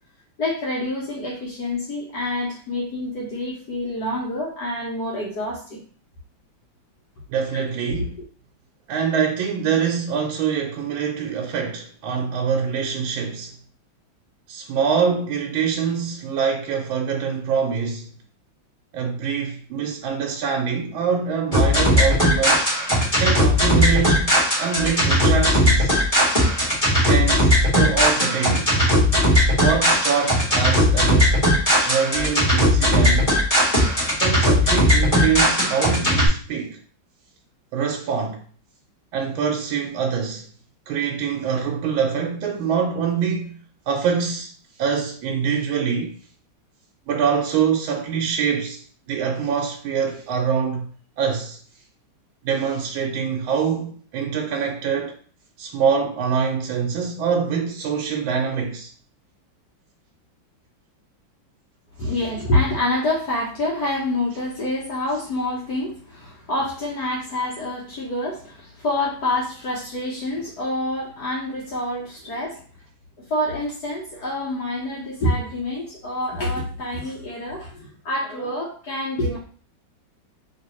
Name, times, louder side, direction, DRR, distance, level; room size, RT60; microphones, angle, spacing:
voice 1, 0.4-5.8 7.5-7.6 7.9-8.0 62.0-72.6 73.3-79.4, left 1 dB, 60° left, 1.3 m, -27 dB
voice 2, 7.3-8.1 8.9-13.5 14.5-18.1 18.9-22.7 23.2-26.1 27.1-28.7 29.5-31.3 31.8-33.4 34.2-36.8 37.7-38.4 39.1-40.5 40.9-43.5 43.9-44.5 44.8-46.1 47.1-48.8 49.1-50.9 51.2-51.6 52.4-55.2 55.6-58.9 62.0-62.1, right 6 dB, 85° right, 1.4 m, -24 dB
sound 1, 21.5-36.3, equal, 20° left, 1.2 m, -18 dB
3.0 x 3.0 x 3.0 m
omnidirectional pair, 2.2 m